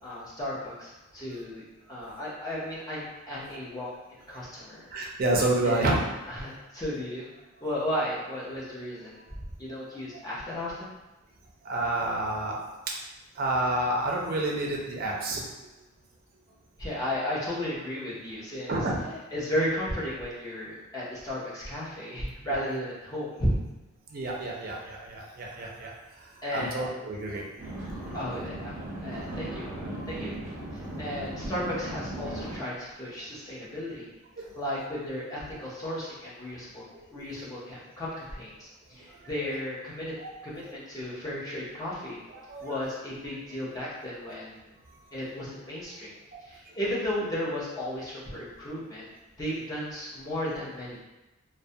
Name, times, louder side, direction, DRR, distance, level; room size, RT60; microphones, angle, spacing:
voice 1, 0.0-4.9 5.6-5.9 6.3-7.3 7.6-10.9 16.8-18.8 19.3-23.6 26.4-26.9 28.1-30.4 30.7-34.1 34.5-36.8 37.1-40.2 40.4-42.2 42.6-44.7 45.1-46.1 46.4-49.1 49.4-51.0, left 1 dB, 15° left, -8 dB, 0.6 m, -34 dB
voice 2, 4.9-6.0 11.6-12.6 13.4-15.4 18.7-19.0 22.4-22.6 24.1-25.9 26.5-27.4 29.9-30.0 34.4-34.5 36.9-37.1 40.2-40.3 42.3-42.7, right 2 dB, 45° right, -2 dB, 0.4 m, -29 dB
sound 1, 27.6-32.6, right 1 dB, 15° right, 1.0 m, -37 dB
2.2 x 2.1 x 2.6 m, 1.0 s
head